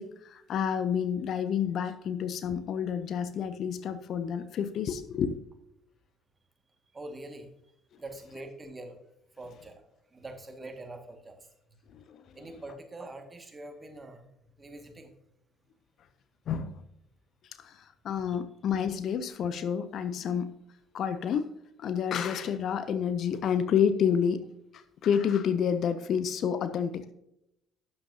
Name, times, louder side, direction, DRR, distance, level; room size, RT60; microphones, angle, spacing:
voice 1, 0.0-5.4 11.9-12.2 16.5-16.8 17.6-20.6 20.9-21.5 21.8-24.4 24.7-27.1, left 7 dB, 50° left, 0.6 m, -29 dB
voice 2, 6.9-7.5 8.0-9.0 9.4-11.5 12.4-14.3 14.5-15.1 18.3-18.4 26.7-26.8, right 2 dB, 25° right, 1.8 m, -44 dB
12.5 x 8.9 x 2.7 m
figure-of-eight pair, 50°, 0 cm